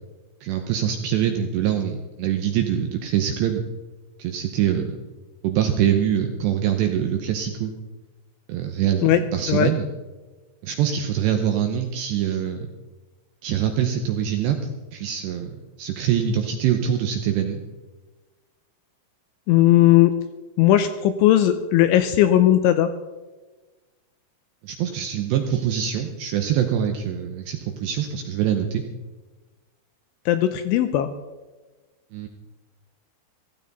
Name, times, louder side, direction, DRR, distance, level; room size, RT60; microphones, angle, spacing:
voice 1, 0.4-3.6 4.2-5.0 5.4-7.7 8.5-9.9 10.6-12.6 13.4-14.6 14.9-15.5 15.8-17.6 24.6-28.8 32.1-32.3, right 9 dB, 80° right, 5 dB, 2.6 m, -24 dB
voice 2, 19.5-20.1 20.6-22.9 30.3-31.1, left 13 dB, 80° left, 9 dB, 2.8 m, -17 dB
16.0 x 14.5 x 4.1 m, 1.2 s
omnidirectional pair, 6.0 m